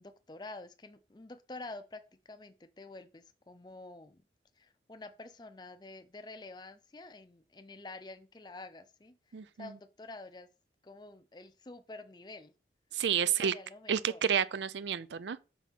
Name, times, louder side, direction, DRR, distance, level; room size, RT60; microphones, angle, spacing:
voice 1, 0.0-4.2 4.6-9.2 9.6-10.5 10.8-12.5 13.2-14.2, left 2 dB, 25° left, 0.5 m, -48 dB
voice 2, 9.3-9.7 12.9-13.5 13.9-15.4, right 8 dB, 85° right, 0.4 m, -30 dB
6.1 x 3.6 x 5.8 m
head